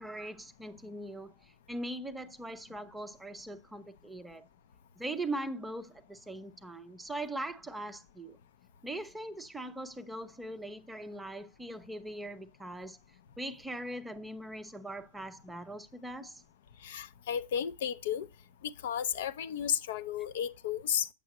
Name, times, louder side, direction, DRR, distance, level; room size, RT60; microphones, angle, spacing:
voice 1, 0.0-4.5 5.0-8.4 8.8-13.0 13.4-16.4, right 1 dB, 5° right, 0.5 m, -41 dB
voice 2, 16.8-18.3 18.6-21.1, left 9 dB, 60° left, 0.6 m, -33 dB
9.2 x 7.2 x 3.0 m
supercardioid pair, 160°, 0 cm